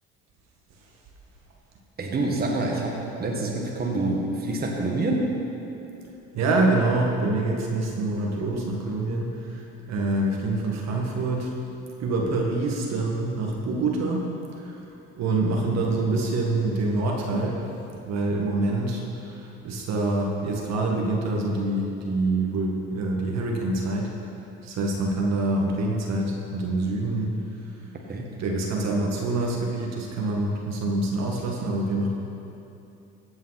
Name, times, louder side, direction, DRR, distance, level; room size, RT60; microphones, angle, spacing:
voice 1, 2.0-5.3 28.1-28.3, right 2 dB, 30° right, -1 dB, 1.8 m, -27 dB
voice 2, 6.3-11.5 12.0-14.3 14.6-14.8 15.2-17.6 18.0-24.1 24.6-27.3 28.4-32.1, right 2 dB, 60° right, -1 dB, 2.0 m, -26 dB
16.5 x 5.6 x 5.9 m, 2.8 s
hypercardioid pair, 70°, 31 cm